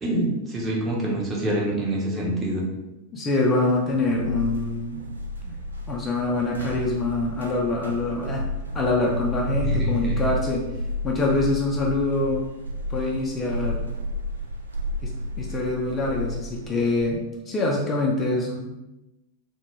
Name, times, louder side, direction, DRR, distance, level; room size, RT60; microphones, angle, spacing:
voice 1, 0.0-2.6 9.6-10.2, right 1 dB, 20° right, -3 dB, 0.7 m, -26 dB
voice 2, 3.1-5.0 5.4-5.6 5.9-10.6 11.0-12.5 12.9-13.9 15.0-15.1 15.4-18.7, left 2 dB, 20° left, -2 dB, 0.4 m, -25 dB
sound 1, 3.5-17.0, left 1 dB, 75° right, 0.3 m, -31 dB
2.1 x 2.1 x 3.2 m, 0.99 s
figure-of-eight pair, 90°, 0 cm